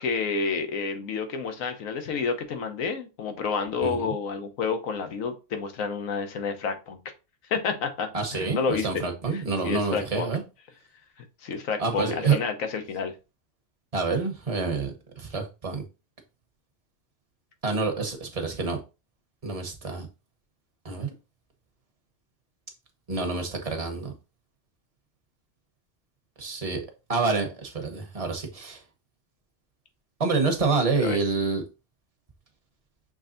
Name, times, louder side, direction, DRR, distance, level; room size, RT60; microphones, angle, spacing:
voice 1, 0.0-7.0 7.5-8.9 9.3-10.3 11.4-13.1 31.0-31.2, left 5 dB, 85° left, 1.2 m, -29 dB
voice 2, 8.1-10.4 11.8-12.4 13.9-15.8 17.6-18.8 19.4-20.1 20.8-21.1 23.1-24.1 26.4-28.8 30.2-31.6, right 4 dB, 30° right, 0.9 m, -27 dB
6.2 x 3.3 x 2.6 m
omnidirectional pair, 1.4 m